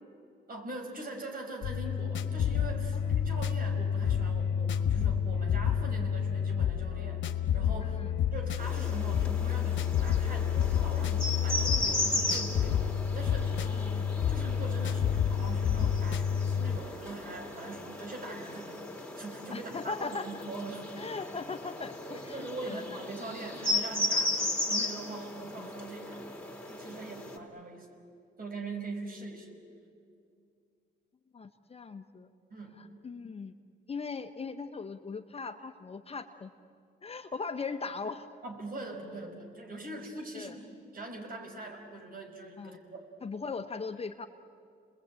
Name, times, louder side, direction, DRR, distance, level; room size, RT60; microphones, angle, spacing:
voice 1, 0.5-8.0 8.3-13.5 14.0-21.0 22.1-26.3 26.7-28.0 28.4-29.5 32.5-32.8 38.4-43.0, right 2 dB, 45° right, 3 dB, 5.4 m, -42 dB
sound 1, 1.6-16.8, left 8 dB, 70° left, 1.4 m, -29 dB
sound 2, 8.6-27.4, left 1 dB, 5° left, 3.5 m, -36 dB
voice 2, 13.6-14.1 19.5-20.3 21.0-23.0 25.6-25.7 26.9-27.1 31.3-32.3 32.8-33.5 33.9-36.5 37.0-38.3 40.3-40.6 42.6-42.8 43.2-44.3, left 4 dB, 30° left, 8 dB, 1.1 m, -39 dB
30.0 x 21.0 x 9.1 m, 2.4 s
cardioid pair, 90°, 20 cm